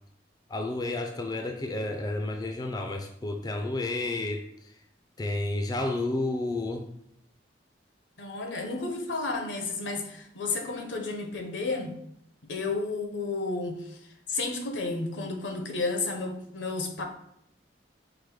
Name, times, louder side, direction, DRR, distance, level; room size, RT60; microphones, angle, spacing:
voice 1, 0.5-4.8 5.2-6.9, left 2 dB, 20° left, 3 dB, 0.4 m, -31 dB
voice 2, 8.2-11.9 12.4-14.0 14.3-17.0, left 3 dB, 80° left, 4 dB, 0.7 m, -32 dB
4.8 x 2.1 x 4.7 m, 0.73 s
head